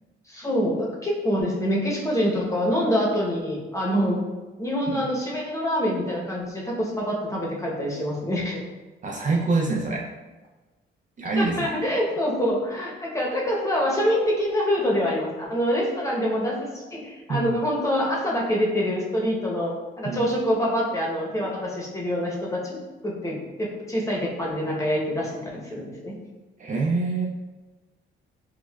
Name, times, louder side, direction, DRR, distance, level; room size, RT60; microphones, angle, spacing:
voice 1, 0.3-4.2 4.6-8.6 11.4-22.8 23.0-26.2, equal, 15° left, -3 dB, 0.9 m, -25 dB
voice 2, 9.0-10.1 11.2-11.7 17.3-17.6 20.0-20.3 26.6-27.3, right 3 dB, 40° right, -1 dB, 0.5 m, -25 dB
4.5 x 2.3 x 2.3 m, 1.2 s
cardioid pair, 90°, 20 cm